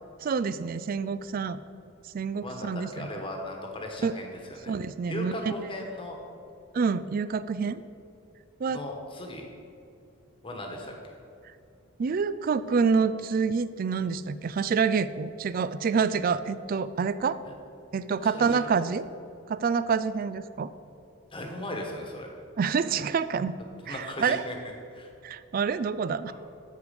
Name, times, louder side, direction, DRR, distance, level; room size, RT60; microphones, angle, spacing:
voice 1, 0.2-1.6 2.1-3.1 4.0-4.1 4.7-5.3 6.7-7.8 8.6-8.8 12.0-17.4 17.9-19.1 19.5-20.7 22.6-23.6 23.9-24.4 25.2-26.3, right 5 dB, 40° right, 15 dB, 0.3 m, -27 dB
voice 2, 2.4-4.7 5.0-6.2 8.7-9.5 10.4-10.9 17.4-17.5 18.2-18.8 21.3-22.3 23.8-24.6 24.9-25.1 26.3-26.4, left 1 dB, 25° left, 2 dB, 1.2 m, -37 dB
13.5 x 4.8 x 5.1 m, 2.7 s
head